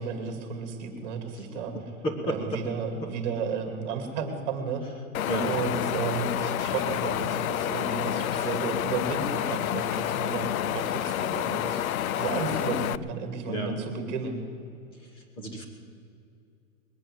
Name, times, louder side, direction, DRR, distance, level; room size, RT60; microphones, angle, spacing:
voice 1, 0.0-1.7 2.3-4.8 5.4-14.4, right 5 dB, 30° right, 5 dB, 2.5 m, -33 dB
voice 2, 2.0-2.6 5.3-5.5 13.5-13.8 15.4-15.6, equal, 10° left, 4 dB, 1.3 m, -30 dB
Wind, 5.1-13.0, left 11 dB, 75° left, 0.6 m, -29 dB
21.0 x 8.8 x 7.8 m, 2.5 s
hypercardioid pair, 170°, 42 cm